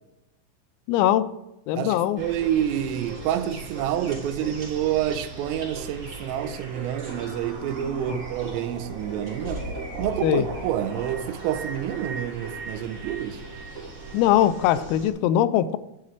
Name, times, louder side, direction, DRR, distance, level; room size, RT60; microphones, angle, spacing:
voice 1, 0.9-1.3 1.7-2.2 8.1-8.2 10.2-10.5 14.1-15.8, left 12 dB, 85° left, 3.3 m, -21 dB
voice 2, 1.8-9.7 10.0-13.4, right 10 dB, 90° right, 3.3 m, -28 dB
sound 1, 2.2-15.1, right 3 dB, 50° right, 0.9 m, -37 dB
11.0 x 10.0 x 3.3 m
omnidirectional pair, 6.0 m